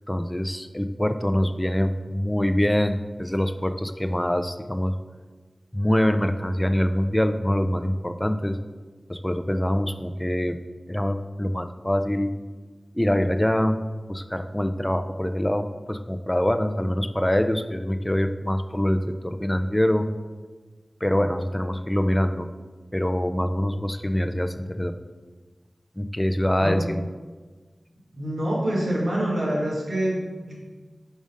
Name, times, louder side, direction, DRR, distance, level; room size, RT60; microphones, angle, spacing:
voice 1, 0.1-4.9 5.7-8.6 9.1-10.6 10.9-12.3 12.9-13.8 14.1-20.1 21.0-22.5 22.9-24.9 26.0-27.0, equal, 15° left, 9 dB, 0.4 m, -24 dB
voice 2, 28.2-30.5, right 1 dB, 90° right, -5 dB, 1.6 m, -26 dB
5.1 x 3.6 x 5.2 m, 1.4 s
wide cardioid pair, 55°, 0 cm